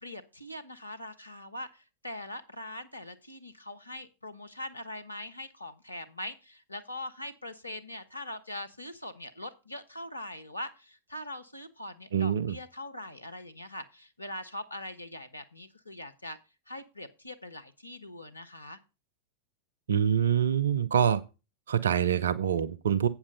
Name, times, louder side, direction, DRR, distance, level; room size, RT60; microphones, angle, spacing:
voice 1, 0.0-16.4 16.7-18.8, left 1 dB, 85° left, 1.0 m, -42 dB
voice 2, 12.1-12.6 19.9-21.2 21.7-23.1, right 8 dB, 65° right, 0.6 m, -25 dB
8.4 x 7.1 x 5.3 m
figure-of-eight pair, 90°, 0 cm